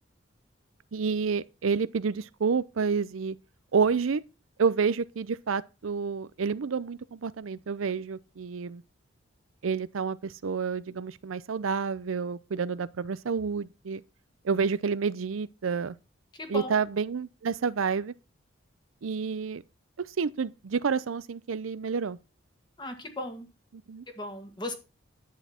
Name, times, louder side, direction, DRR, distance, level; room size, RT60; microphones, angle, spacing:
voice 1, 0.9-3.4 3.7-4.2 4.6-8.8 9.6-14.0 14.4-16.0 16.5-18.1 19.0-19.6 20.0-22.2 23.9-24.0, right 5 dB, 85° right, 0.5 m, -29 dB
voice 2, 16.3-16.7 22.8-23.5 24.2-24.7, left 1 dB, 20° left, 1.7 m, -37 dB
10.5 x 8.2 x 4.3 m
head